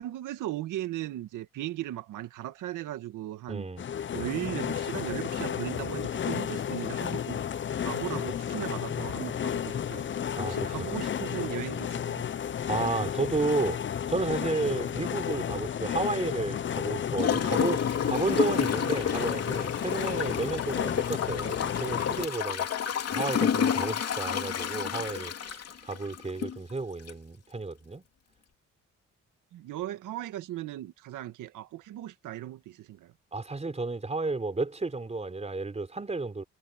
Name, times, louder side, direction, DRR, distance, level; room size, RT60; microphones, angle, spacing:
voice 1, 0.0-3.7 4.1-7.4 7.8-10.1 10.5-12.3 18.2-18.4 29.5-33.1, right 14 dB, 85° right, 2.0 m, -37 dB
voice 2, 3.5-3.8 10.4-10.9 12.7-13.8 14.1-28.0 33.3-36.4, right 3 dB, 20° right, 4.1 m, -32 dB
sound 1, 3.8-22.3, left 8 dB, 40° left, 0.7 m, -32 dB
Gurgling / Toilet flush, 17.2-26.6 27.1-27.2, left 8 dB, 55° left, 2.9 m, -30 dB
cardioid pair, 90°, 30 cm